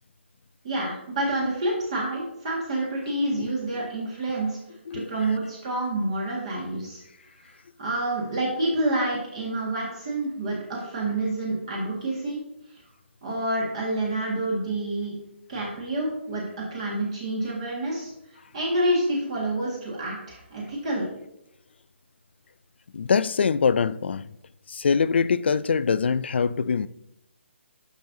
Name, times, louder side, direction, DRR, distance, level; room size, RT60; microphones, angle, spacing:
voice 1, 0.6-4.6 4.9-7.0 7.5-12.4 13.2-15.1 15.5-18.1 18.5-21.1, right 1 dB, 30° right, 1.8 m, -28 dB
voice 2, 4.9-5.4 22.9-24.4 24.7-26.9, left 6 dB, 55° left, 0.3 m, -24 dB
10.0 x 6.2 x 2.7 m
hypercardioid pair, 175°, 7 cm